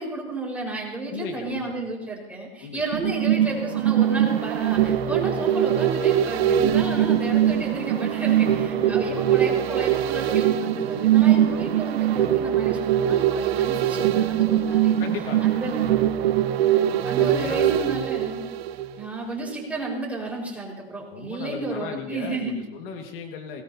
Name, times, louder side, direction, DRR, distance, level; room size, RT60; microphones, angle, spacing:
voice 1, 0.0-15.0 15.4-15.9 16.7-18.4 19.0-22.5, right 2 dB, 5° right, -3 dB, 4.8 m, -32 dB
voice 2, 1.1-1.7 2.6-2.8 8.7-9.2 15.0-16.1 17.2-18.0 21.1-23.6, left 6 dB, 60° left, 4 dB, 1.9 m, -37 dB
sound 1, 2.9-19.2 19.5-19.6, right 11 dB, 80° right, 1.0 m, -22 dB
20.5 x 19.0 x 2.8 m, 0.99 s
supercardioid pair, 125°, 30 cm